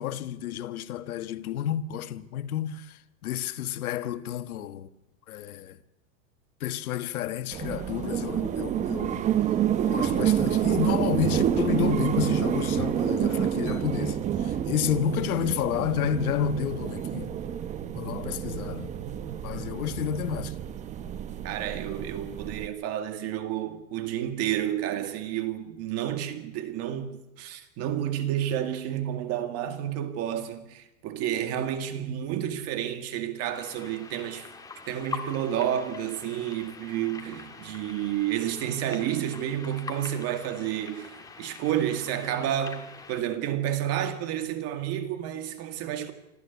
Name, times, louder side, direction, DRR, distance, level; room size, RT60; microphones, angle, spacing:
voice 1, 0.0-4.9 5.3-5.8 6.6-9.3 9.9-17.3 17.9-18.9 19.4-20.6, left 9 dB, 85° left, 1.4 m, -30 dB
sound 1, 7.5-22.7, right 10 dB, 15° right, 0.7 m, -28 dB
voice 2, 21.4-34.5 34.9-46.1, right 11 dB, 35° right, 2.1 m, -30 dB
sound 2, 33.5-43.2, left 4 dB, 10° left, 1.8 m, -43 dB
25.5 x 13.5 x 8.2 m
supercardioid pair, 160°, 42 cm